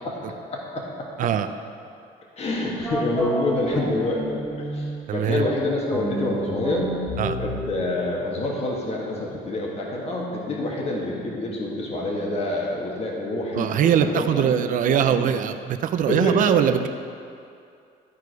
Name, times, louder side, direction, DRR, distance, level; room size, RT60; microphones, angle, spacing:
voice 1, 0.5-1.3 2.4-6.9 7.4-15.2 16.1-16.5, left 1 dB, 40° left, -2 dB, 1.6 m, -27 dB
sound 1, 2.8-5.1 5.9-9.2, right 1 dB, ahead, 1.8 m, -31 dB
voice 2, 5.1-5.5 7.2-7.4 13.5-16.9, right 9 dB, 55° right, 9 dB, 0.5 m, -22 dB
12.5 x 4.8 x 4.7 m, 2.5 s
cardioid pair, 110°, 17 cm